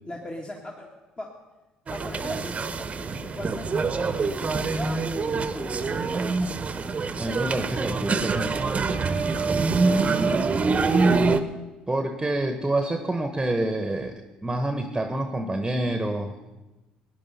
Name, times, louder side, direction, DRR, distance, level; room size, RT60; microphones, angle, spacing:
voice 1, 0.0-0.9 1.2-1.3 1.9-6.7 9.6-10.2, left 1 dB, 30° left, 0 dB, 1.9 m, -39 dB
sound 1, 1.9-11.4, right 4 dB, 35° right, 0.9 m, -25 dB
voice 2, 7.2-8.7 11.9-16.4, right 1 dB, 15° right, 8 dB, 1.1 m, -27 dB
16.5 x 10.0 x 5.6 m, 1.1 s
hypercardioid pair, 60°, 4 cm